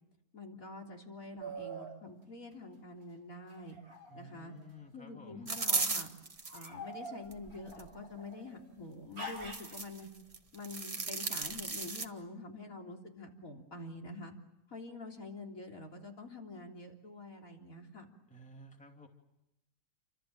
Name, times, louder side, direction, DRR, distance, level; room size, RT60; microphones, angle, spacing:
voice 1, 0.3-3.8 4.1-4.5 4.9-6.1 6.5-10.1 10.5-14.3 14.7-18.1, left 2 dB, 55° left, 1 dB, 3.8 m, -46 dB
sound 1, 1.4-2.0 3.5-4.7 5.4-5.9 6.5-8.6 9.2-9.8, right 1 dB, 60° right, 7.0 m, -45 dB
voice 2, 4.1-5.5 18.3-19.1, left 1 dB, 5° left, 2 dB, 2.6 m, -53 dB
sound 2, 5.5-6.7 7.3-7.9 9.2-10.0 10.3-12.1, right 3 dB, 25° right, 1.1 m, -35 dB
29.0 x 25.5 x 7.7 m, 0.89 s
omnidirectional pair, 1.8 m